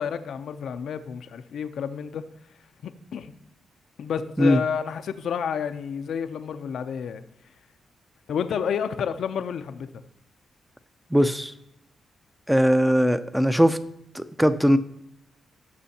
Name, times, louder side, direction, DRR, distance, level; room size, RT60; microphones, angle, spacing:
voice 1, 0.0-2.2 2.8-3.3 4.0-7.2 8.3-10.0, left 7 dB, 75° left, 0.6 m, -30 dB
voice 2, 11.1-11.5 12.5-13.8 14.1-14.8, equal, 5° right, 0.6 m, -20 dB
17.0 x 6.2 x 2.8 m
cardioid pair, 90°, 0 cm